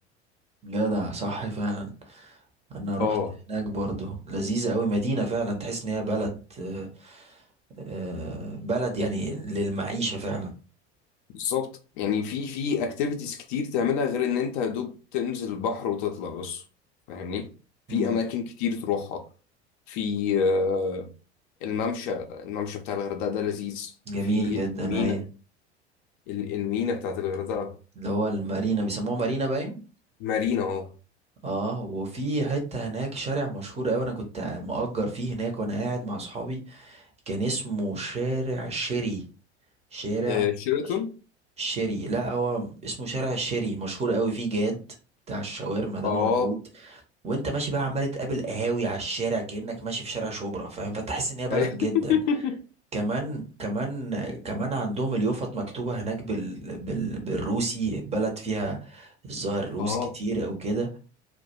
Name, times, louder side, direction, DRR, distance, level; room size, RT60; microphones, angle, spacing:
voice 1, 0.6-2.4 2.7-3.2 3.5-7.4 7.9-10.5 17.9-18.2 24.1-25.2 28.0-29.8 31.4-39.2 39.9-40.4 41.6-44.8 45.3-46.6 47.2-52.2 52.9-60.9, right 2 dB, 20° right, 0.6 m, -29 dB
voice 2, 3.0-3.3 11.3-16.6 17.1-17.5 17.9-19.3 19.9-21.1 21.6-23.9 24.2-25.2 26.3-27.7 30.2-30.9 40.3-41.1 46.0-46.6 51.5-52.6 59.8-60.1, left 6 dB, 50° left, 0.5 m, -28 dB
2.2 x 2.1 x 2.7 m
figure-of-eight pair, 75°, 34 cm